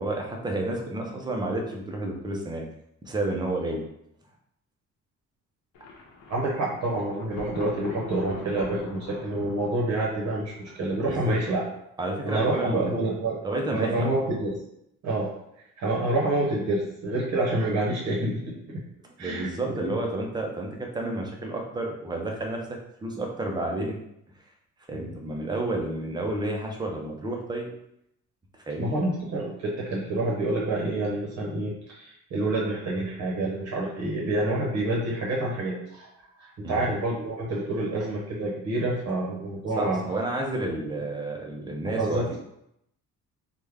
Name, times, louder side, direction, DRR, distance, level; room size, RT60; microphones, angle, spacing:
voice 1, 0.0-2.7 3.0-3.8 11.1-11.4 12.0-12.8 13.4-14.1 19.0-22.6 23.0-24.0 24.9-27.7 28.7-28.9 36.6-36.9 39.8-42.2, right 2 dB, 15° right, 1 dB, 0.4 m, -30 dB
Thunder, 5.7-11.6, left 3 dB, 80° left, 0.7 m, -43 dB
voice 2, 6.3-11.6 12.2-13.4 13.7-14.6 15.0-15.3 15.8-18.8 19.2-19.8 24.9-25.1 28.8-36.1 36.4-40.0 41.8-42.4, right 2 dB, 55° right, -4 dB, 0.7 m, -28 dB
3.4 x 2.1 x 3.3 m, 0.78 s
cardioid pair, 170°, 32 cm